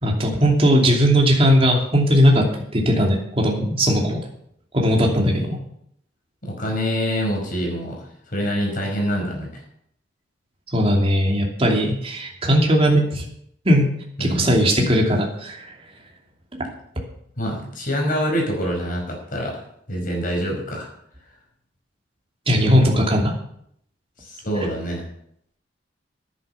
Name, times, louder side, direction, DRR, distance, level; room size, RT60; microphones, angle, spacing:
voice 1, 0.0-2.4 2.7-4.2 4.7-5.6 10.7-13.2 13.6-13.9 14.2-15.7 22.5-23.3, equal, 30° right, -1 dB, 2.8 m, -18 dB
voice 2, 6.4-8.0 8.3-9.6 14.2-14.6 17.4-19.6 19.9-20.9 22.6-23.0 24.2-25.0, equal, 50° left, 1 dB, 5.2 m, -26 dB
11.0 x 9.5 x 6.8 m, 0.71 s
head